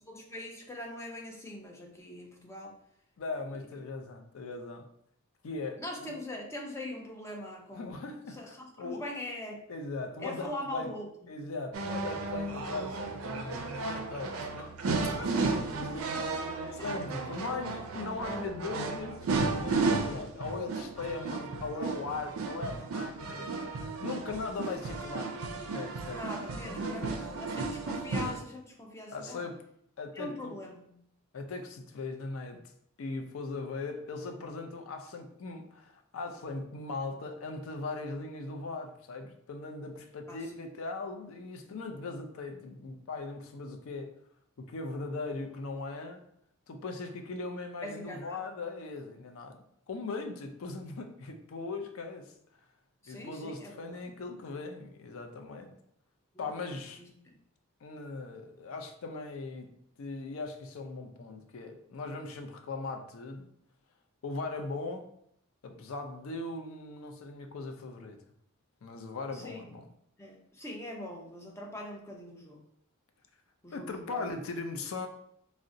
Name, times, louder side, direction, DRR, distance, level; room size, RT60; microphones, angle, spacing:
voice 1, 0.1-2.7 5.8-8.0 8.3-9.6 10.2-11.4 15.3-15.6 16.1-16.3 16.6-17.0 26.1-29.4 30.1-30.9 40.3-40.6 41.6-41.7 47.8-48.4 53.0-54.0 56.3-56.5 57.0-57.4 69.3-69.7 70.2-72.6 73.6-74.3, left 1 dB, 15° left, 0 dB, 0.4 m, -42 dB
voice 2, 3.2-4.9 5.4-6.2 7.7-9.0 9.7-10.9 11.3-25.4 25.7-26.2 26.6-27.1 29.1-29.6 30.0-30.6 31.3-32.6 33.0-44.1 44.6-46.2 46.7-52.3 53.1-55.7 56.4-57.0 57.8-59.7 60.0-63.5 64.2-65.1 65.6-68.2 68.8-69.9 73.7-75.1, left 3 dB, 70° left, 6 dB, 0.4 m, -39 dB
sound 1, 11.7-28.4, right 3 dB, 70° right, 0.4 m, -34 dB
3.7 x 2.1 x 2.5 m, 0.72 s
head